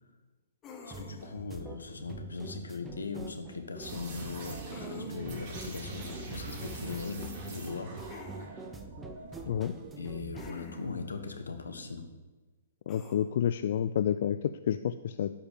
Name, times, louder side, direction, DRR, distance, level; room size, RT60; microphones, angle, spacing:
sound 1, 0.6-1.4 4.7-5.5 8.1-8.5 10.3-11.0 12.9-13.2, left 4 dB, 25° left, 1.9 m, -47 dB
voice 1, 0.8-8.0 10.0-12.1, left 4 dB, 85° left, 8 dB, 1.4 m, -39 dB
sound 2, 0.9-10.5, right 3 dB, 15° right, 0.9 m, -46 dB
sound 3, 3.8-10.0, right 2 dB, 40° right, 3.6 m, -43 dB
voice 2, 12.9-15.3, left 9 dB, 60° left, 12 dB, 0.4 m, -29 dB
11.5 x 5.1 x 8.3 m, 1.2 s
hypercardioid pair, 120°, 0 cm